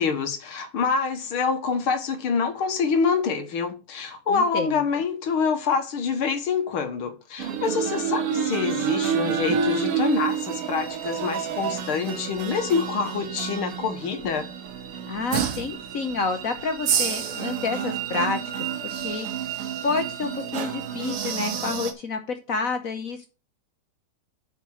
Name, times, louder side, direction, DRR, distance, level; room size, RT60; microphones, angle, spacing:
voice 1, 0.0-14.5, left 5 dB, 75° left, 2.1 m, -26 dB
voice 2, 4.3-4.8 15.1-18.4 18.8-19.3 19.8-23.3, left 4 dB, 55° left, 1.0 m, -29 dB
sound 1, 7.4-21.9, right 8 dB, 90° right, 2.0 m, -29 dB
7.3 x 5.5 x 6.4 m
omnidirectional pair, 2.4 m